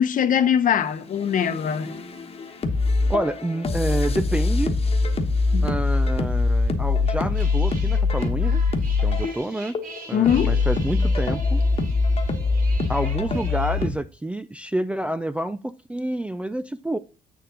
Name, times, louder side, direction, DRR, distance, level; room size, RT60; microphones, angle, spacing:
voice 1, 0.0-2.0 5.5-5.7 10.1-10.6, left 8 dB, 50° left, 0.9 m, -21 dB
sound 1, 1.2-13.9, left 3 dB, 35° left, 1.2 m, -23 dB
voice 2, 3.1-4.7 5.6-8.6 9.0-9.8 10.1-11.6 12.9-17.0, right 1 dB, 5° right, 0.3 m, -28 dB
sound 2, 7.2-13.9, right 3 dB, 60° right, 2.3 m, -43 dB
7.6 x 6.9 x 3.8 m
cardioid pair, 110°, 17 cm